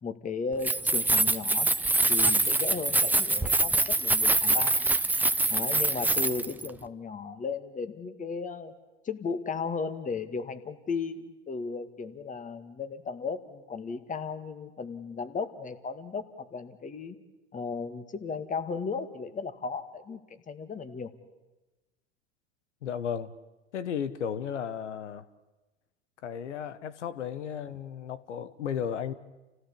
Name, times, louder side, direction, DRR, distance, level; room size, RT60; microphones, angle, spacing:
voice 1, 0.0-1.7 2.1-4.7 5.5-8.7 9.0-17.2 17.5-21.1, left 5 dB, 20° left, 11 dB, 1.9 m, -35 dB
Keys jangling, 0.5-6.7, right 2 dB, 5° right, 0.9 m, -25 dB
voice 2, 22.8-23.3 23.7-25.2 26.2-29.1, left 8 dB, 90° left, 15 dB, 1.2 m, -34 dB
28.5 x 16.0 x 8.6 m, 1.1 s
hypercardioid pair, 100°, 35 cm